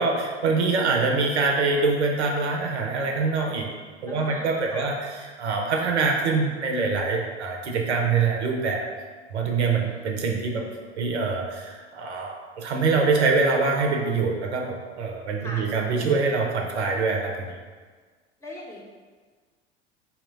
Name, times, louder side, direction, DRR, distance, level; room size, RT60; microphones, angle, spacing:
voice 1, 0.0-3.7 4.0-5.0 5.4-8.9 9.3-10.7 11.0-17.5, right 4 dB, 70° right, 2 dB, 0.6 m, -24 dB
voice 2, 4.1-4.9 9.8-10.8 15.4-15.7 18.4-18.9, left 1 dB, 10° left, -5 dB, 0.7 m, -42 dB
4.2 x 2.1 x 4.0 m, 1.5 s
figure-of-eight pair, 75°, 35 cm